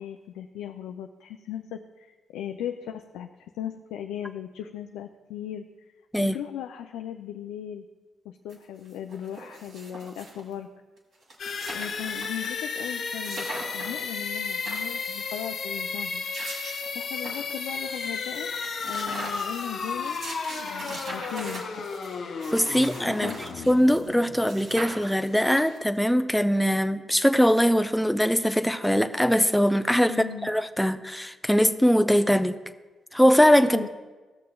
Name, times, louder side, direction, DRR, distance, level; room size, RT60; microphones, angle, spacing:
voice 1, 0.0-5.6 6.2-7.8 8.2-10.7 11.7-13.5 13.7-16.2 16.9-18.5 18.8-20.2 20.5-21.9 23.2-23.4 30.1-30.5 33.7-33.9, left 10 dB, 80° left, 5 dB, 0.3 m, -37 dB
sound 1, 8.5-8.6 8.9-10.5 11.0-11.1 11.2-12.5 12.8-12.9 13.2-14.0 14.4-15.3 16.0-17.7 18.0-18.1 18.4-24.2 24.4-26.0, right 2 dB, 65° right, 1.9 m, -41 dB
sound 2, 11.4-25.1, left 5 dB, 65° left, 0.7 m, -33 dB
voice 2, 22.5-23.3 23.7-30.1 30.4-32.6 33.1-33.9, equal, 5° left, 10 dB, 0.5 m, -21 dB
15.5 x 6.6 x 2.3 m, 1.2 s
hypercardioid pair, 50°, 0 cm